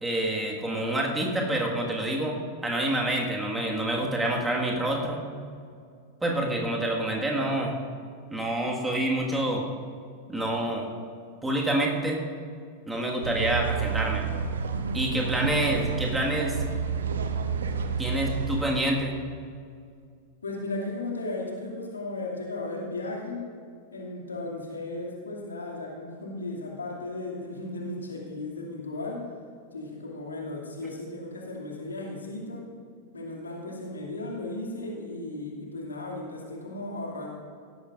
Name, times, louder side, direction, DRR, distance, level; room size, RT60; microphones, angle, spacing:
voice 1, 0.0-5.2 6.2-7.7 8.3-9.7 10.3-10.9 11.4-12.2 12.9-14.2 14.9-16.6 18.0-19.1, right 1 dB, 10° right, -1 dB, 1.8 m, -27 dB
sound 1, 13.2-18.6, right 5 dB, 65° right, 0.9 m, -29 dB
voice 2, 20.4-23.4 23.9-29.3 29.7-32.7 33.1-37.3, left 2 dB, 75° left, -2 dB, 2.5 m, -35 dB
17.5 x 13.0 x 2.6 m, 2.2 s
figure-of-eight pair, 90°, 0 cm